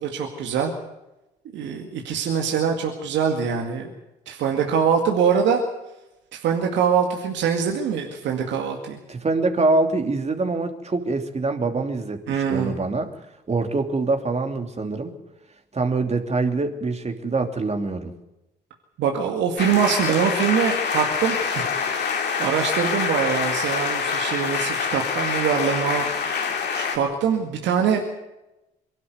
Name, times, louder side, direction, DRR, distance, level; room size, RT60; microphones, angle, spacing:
voice 1, 0.0-0.7 1.5-3.9 4.3-5.6 6.3-9.0 12.3-12.8 19.0-22.1 22.4-26.3 26.7-28.2, right 7 dB, 70° right, 2 dB, 2.2 m, -23 dB
voice 2, 9.1-13.1 13.5-15.2 15.7-18.1, right 3 dB, 35° right, 6 dB, 3.0 m, -24 dB
sound 1, 19.6-27.0, left 6 dB, 60° left, 3.2 m, -25 dB
23.0 x 12.5 x 9.5 m, 0.96 s
hypercardioid pair, 55°, 19 cm